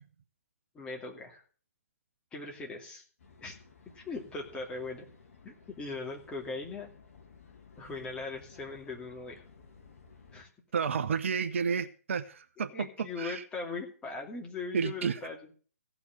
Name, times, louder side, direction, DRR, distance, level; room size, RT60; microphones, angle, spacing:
voice 1, 0.7-1.4 2.3-3.0 3.4-3.5 3.9-5.1 5.4-6.9 7.8-9.4 10.3-10.5 12.7-15.5, left 3 dB, 10° left, 2.6 m, -39 dB
sound 1, 3.2-10.4, left 5 dB, 60° left, 2.3 m, -57 dB
voice 2, 10.7-13.4 14.7-15.2, right 6 dB, 50° right, 0.9 m, -31 dB
16.0 x 6.0 x 7.8 m
figure-of-eight pair, 130°, 8 cm